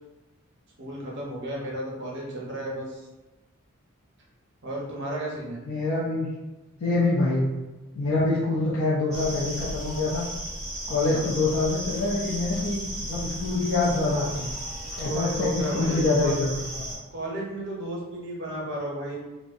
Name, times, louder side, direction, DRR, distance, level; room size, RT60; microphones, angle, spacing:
voice 1, 0.8-3.1 4.6-5.6 11.1-11.2 15.0-16.4 17.1-19.1, right 1 dB, 50° right, -4 dB, 0.6 m, -33 dB
voice 2, 5.7-6.3 6.8-7.6 8.0-10.3 10.9-14.5 15.0-16.8, left 2 dB, 65° left, -7 dB, 0.4 m, -25 dB
sound 1, 9.1-17.0, right 1 dB, ahead, 0.6 m, -35 dB
2.6 x 2.0 x 2.4 m, 1.1 s
head